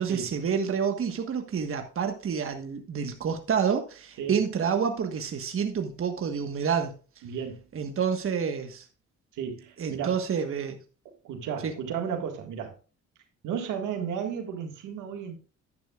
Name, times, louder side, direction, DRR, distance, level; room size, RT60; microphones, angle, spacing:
voice 1, 0.0-6.9 7.7-8.9 9.8-10.8 11.6-11.7, right 7 dB, 45° right, 1.4 m, -28 dB
voice 2, 7.2-7.7 9.3-10.2 11.2-12.8 13.4-15.3, right 7 dB, 85° right, 1.9 m, -33 dB
11.0 x 10.5 x 2.4 m
cardioid pair, 90°, 30 cm